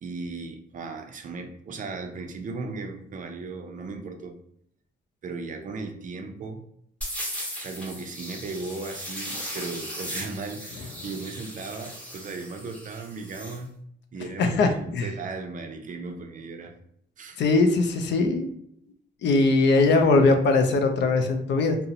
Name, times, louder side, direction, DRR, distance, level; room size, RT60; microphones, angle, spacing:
voice 1, 0.0-4.4 5.2-6.6 7.6-13.7 14.1-16.7 17.2-17.4, right 3 dB, 40° right, 5 dB, 0.4 m, -36 dB
sound 1, 7.0-13.6, equal, 5° left, 0.9 m, -37 dB
voice 2, 14.4-15.1 17.4-18.5 19.2-21.8, left 3 dB, 65° left, 6 dB, 0.4 m, -21 dB
2.7 x 2.0 x 2.5 m, 0.68 s
cardioid pair, 90°, 20 cm